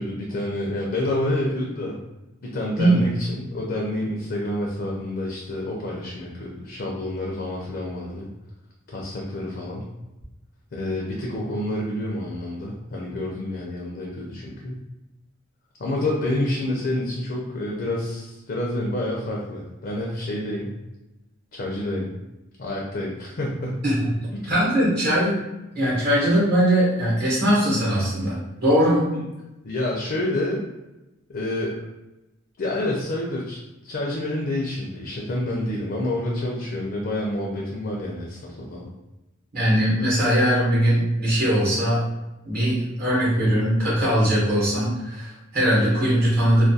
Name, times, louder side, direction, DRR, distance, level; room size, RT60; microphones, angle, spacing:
voice 1, 0.0-2.0 2.4-8.3 8.9-9.9 10.7-14.8 15.8-20.7 21.5-22.1 22.6-23.8 24.4-24.5 25.1-25.2 29.1-29.3 29.6-30.6 31.3-31.8 32.6-33.6 33.8-38.9, left 1 dB, 45° left, -3 dB, 0.4 m, -28 dB
voice 2, 24.5-25.3 25.7-29.1 39.5-42.0 42.4-46.7, equal, 45° right, -7 dB, 0.9 m, -20 dB
2.3 x 2.2 x 2.6 m, 0.99 s
head